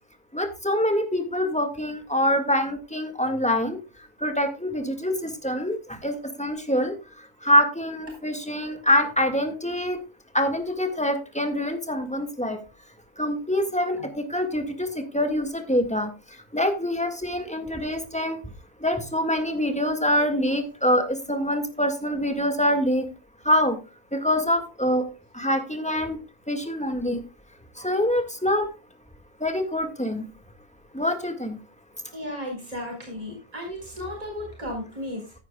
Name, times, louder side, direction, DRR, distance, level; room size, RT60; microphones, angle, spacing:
voice 1, 0.3-3.8 4.2-7.0 7.4-10.0 10.3-12.6 13.2-16.1 16.5-18.4 18.8-23.1 23.5-23.8 24.1-25.1 25.3-26.2 26.5-27.2 27.8-28.7 29.4-30.3 30.9-31.6, left 1 dB, 5° left, 6 dB, 1.7 m, -25 dB
voice 2, 32.1-35.3, left 1 dB, 35° right, 0 dB, 4.6 m, -34 dB
14.5 x 9.5 x 2.3 m, 0.29 s
omnidirectional pair, 1.1 m